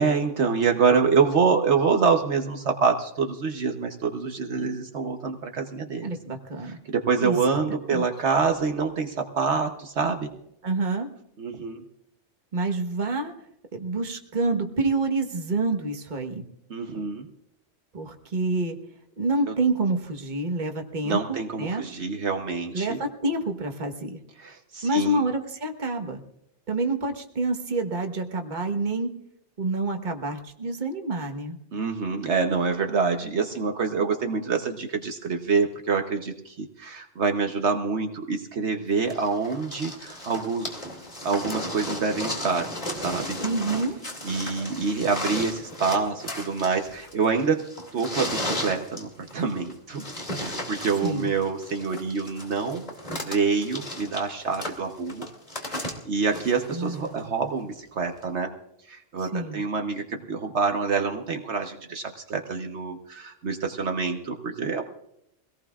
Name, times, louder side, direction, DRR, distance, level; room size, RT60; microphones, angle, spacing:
voice 1, 0.0-6.1 6.7-10.3 11.4-11.8 16.7-17.3 19.5-19.6 21.0-23.0 24.4-25.2 31.7-40.8 41.2-42.7 43.0-43.4 44.2-47.7 47.9-50.0 50.4-52.9 53.2-55.3 55.6-58.6 58.9-64.8, right 5 dB, 65° right, 4 dB, 1.3 m, -26 dB
voice 2, 6.0-6.8 7.2-7.6 7.9-8.0 10.6-11.1 12.5-13.3 13.7-16.4 17.9-18.8 19.2-21.8 22.7-24.2 24.8-26.2 26.7-29.1 29.6-31.6 43.4-44.0 51.0-51.3 56.7-57.3 59.2-59.6, right 2 dB, 40° right, 4 dB, 1.4 m, -28 dB
Wood panel board debris pull scrape, 39.1-57.2 58.2-58.3, left 1 dB, 35° left, 2.7 m, -35 dB
24.5 x 17.5 x 2.4 m, 0.77 s
omnidirectional pair, 1.2 m